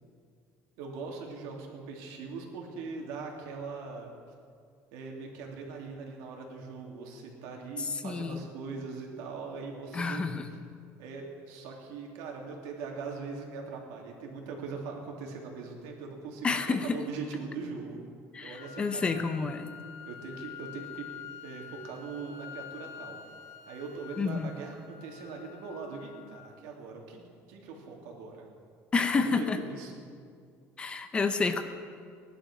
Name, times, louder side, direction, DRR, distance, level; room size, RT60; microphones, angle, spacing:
voice 1, 0.8-4.1 4.9-10.2 11.0-18.0 18.4-19.1 20.0-21.1 21.4-23.2 23.7-28.5 29.1-30.1, right 4 dB, 85° right, 0 dB, 3.0 m, -41 dB
voice 2, 7.8-8.4 9.9-10.5 16.4-17.0 18.3-19.7 24.2-24.5 28.9-29.6 30.8-31.6, left 4 dB, 20° left, 8 dB, 0.7 m, -29 dB
sound 1, 18.6-26.6, left 8 dB, 90° left, 1.1 m, -47 dB
18.5 x 11.5 x 6.3 m, 2.2 s
cardioid pair, 170°, 6 cm